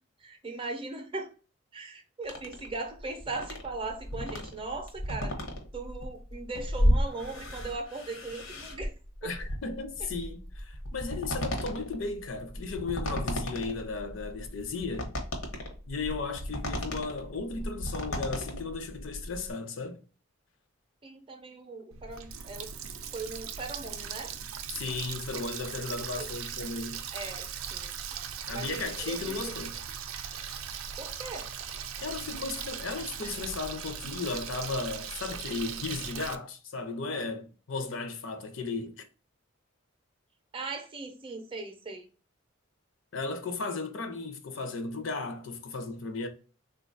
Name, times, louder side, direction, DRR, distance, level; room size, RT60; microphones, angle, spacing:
voice 1, 0.2-1.4 1.7-5.5 5.7-8.9 9.2-9.3 10.0-10.1 21.0-22.7 23.1-24.3 26.2-26.3 27.1-29.6 31.0-31.5 40.5-42.1, right 3 dB, 25° right, 0.5 m, -39 dB
sound 1, 2.2-19.5, equal, 85° left, 0.9 m, -33 dB
voice 2, 9.2-15.2 15.9-20.0 24.7-27.0 28.5-29.7 32.0-39.0 43.1-46.3, left 3 dB, 70° left, 0.5 m, -35 dB
Water tap faucet, 21.9-36.4, right 7 dB, 85° right, 0.4 m, -39 dB
3.6 x 2.2 x 2.5 m
head